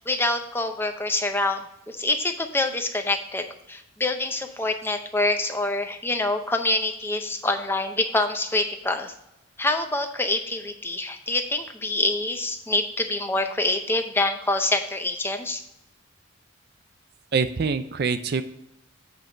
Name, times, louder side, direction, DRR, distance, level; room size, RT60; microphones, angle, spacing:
voice 1, 0.1-9.1 9.6-15.6, left 2 dB, 10° left, 6 dB, 0.6 m, -26 dB
voice 2, 17.3-18.4, right 5 dB, 50° right, 11 dB, 0.4 m, -24 dB
7.8 x 4.7 x 5.0 m, 0.82 s
head